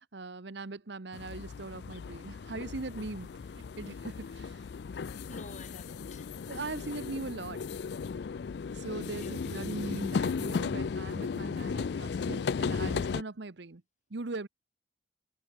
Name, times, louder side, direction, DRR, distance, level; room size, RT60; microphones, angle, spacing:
voice 1, 0.1-3.3 3.8-4.6 6.5-7.6 8.7-13.8 14.1-14.5, right 3 dB, 70° right, 1.0 m, -40 dB
sound 1, 1.1-13.2, left 5 dB, 65° left, 0.4 m, -35 dB
voice 2, 5.0-6.3 8.9-9.4, left 2 dB, 40° left, 4.4 m, -51 dB
head